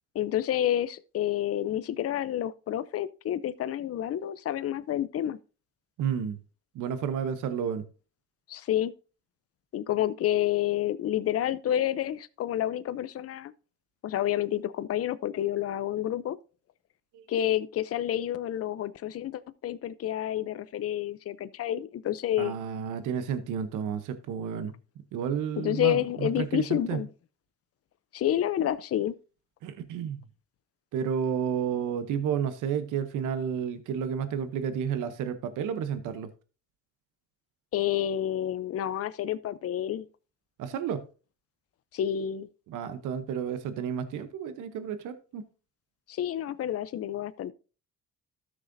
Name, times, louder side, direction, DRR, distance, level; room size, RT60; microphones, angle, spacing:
voice 1, 0.1-5.4 8.5-8.9 9.7-13.5 14.0-16.4 17.3-22.6 25.6-27.1 28.1-29.1 37.7-40.1 41.9-42.5 46.1-47.5, left 11 dB, 50° left, 0.6 m, -29 dB
voice 2, 6.0-6.4 6.7-7.8 17.1-17.2 22.4-24.7 25.1-27.0 29.6-30.2 30.9-36.3 40.6-41.0 42.7-45.4, right 8 dB, 90° right, 0.9 m, -31 dB
13.5 x 6.5 x 2.7 m
cardioid pair, 90°, 30 cm